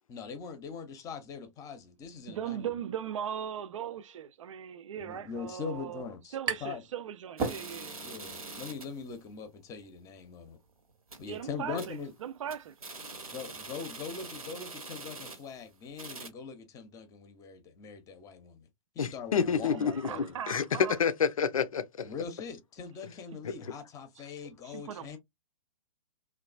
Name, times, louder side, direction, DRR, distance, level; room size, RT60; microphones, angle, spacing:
voice 1, 0.1-2.7 5.0-6.8 8.0-10.6 11.2-12.1 13.3-18.7 18.9-20.4 22.0-25.2, left 5 dB, 20° left, 0.7 m, -42 dB
voice 2, 2.3-6.0 6.3-8.0 11.2-12.7 19.6-21.0 24.6-25.2, right 9 dB, 60° right, 0.4 m, -39 dB
sound 1, 5.8-6.9 7.2-8.1, right 4 dB, 20° right, 0.7 m, -35 dB
sound 2, 7.4-9.0 9.4-9.5 9.8-9.9 10.4-10.6 10.9-11.4 11.8-12.1 12.4-15.6 15.9-16.3, right 3 dB, 85° right, 0.9 m, -44 dB
voice 3, 19.0-22.1, left 6 dB, 70° left, 0.5 m, -29 dB
3.1 x 2.3 x 2.3 m
figure-of-eight pair, 115°, 18 cm